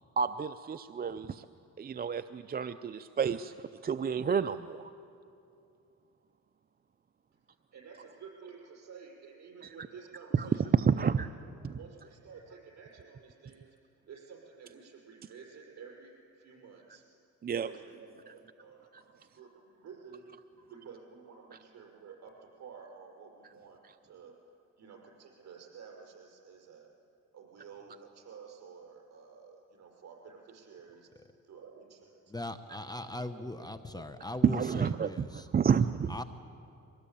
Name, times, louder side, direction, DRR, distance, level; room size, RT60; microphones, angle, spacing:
voice 1, 0.2-1.4 1.8-4.9 10.4-10.5 10.7-11.3 11.6-11.7 17.4-17.7 34.4-36.2, right 7 dB, 30° right, 11 dB, 0.5 m, -29 dB
voice 2, 7.7-11.1 11.4-17.0 17.6-20.2 20.6-22.3 22.6-24.4 24.8-26.9 27.3-31.1 31.5-32.3 32.8-34.3, right 6 dB, 65° right, 1 dB, 5.8 m, -52 dB
voice 3, 32.3-35.5 36.1-36.2, left 1 dB, 15° left, 10 dB, 0.9 m, -40 dB
23.5 x 18.5 x 8.6 m, 2.6 s
cardioid pair, 90°, 30 cm